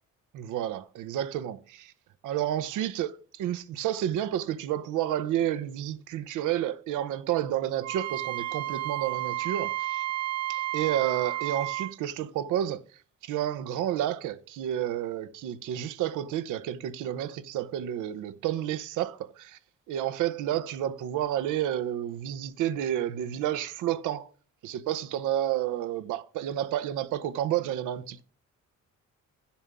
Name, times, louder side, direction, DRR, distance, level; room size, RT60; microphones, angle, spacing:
voice 1, 0.3-1.9 2.2-10.0 10.5-12.8 13.2-19.6 19.9-24.3 24.6-28.2, right 11 dB, 90° right, 0.8 m, -30 dB
Wind instrument woodwind instrument, 7.8-11.9, right 15 dB, 55° right, 0.8 m, -32 dB
10.5 x 7.1 x 3.6 m
cardioid pair, 90°, 30 cm